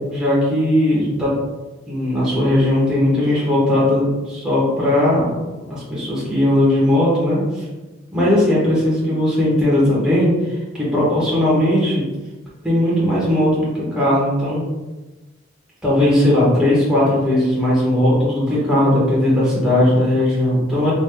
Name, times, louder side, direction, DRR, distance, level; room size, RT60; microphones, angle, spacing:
voice 1, 0.1-1.3 1.9-7.6 8.1-12.0 12.6-14.6 15.8-20.9, left 1 dB, 5° right, -8 dB, 1.3 m, -18 dB
5.0 x 3.4 x 2.3 m, 1.1 s
head